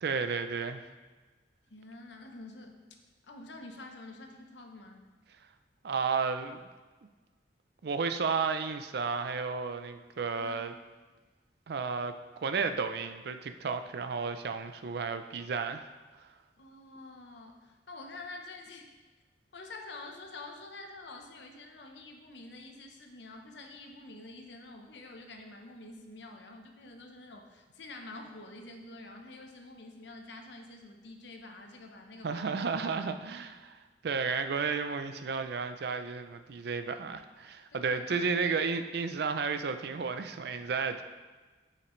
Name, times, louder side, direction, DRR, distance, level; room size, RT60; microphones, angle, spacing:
voice 1, 0.0-0.8 5.8-6.7 7.8-10.7 11.7-15.8 32.2-33.8 34.0-41.0, right 5 dB, 65° right, 9 dB, 0.4 m, -32 dB
voice 2, 1.7-2.8 3.2-5.1 10.3-10.6 14.3-14.4 16.6-18.9 19.5-32.6 37.7-38.5, left 2 dB, 75° left, 3 dB, 0.9 m, -47 dB
8.1 x 5.8 x 3.1 m, 1.3 s
head